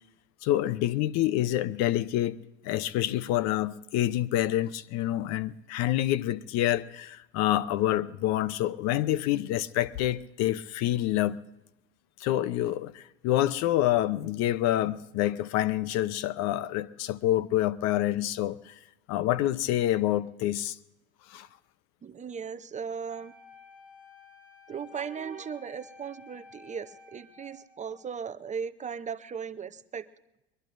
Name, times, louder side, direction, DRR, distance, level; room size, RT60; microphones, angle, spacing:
voice 1, 0.4-2.4 2.6-11.4 12.2-18.7 19.1-20.8 21.3-21.5, left 14 dB, 55° left, 0.7 m, -27 dB
voice 2, 22.0-23.3 24.7-30.1, right 6 dB, 25° right, 0.7 m, -37 dB
Wind instrument woodwind instrument, 23.1-28.2, left 4 dB, 5° right, 6.6 m, -53 dB
22.5 x 21.5 x 2.6 m
hypercardioid pair, 95°, 32 cm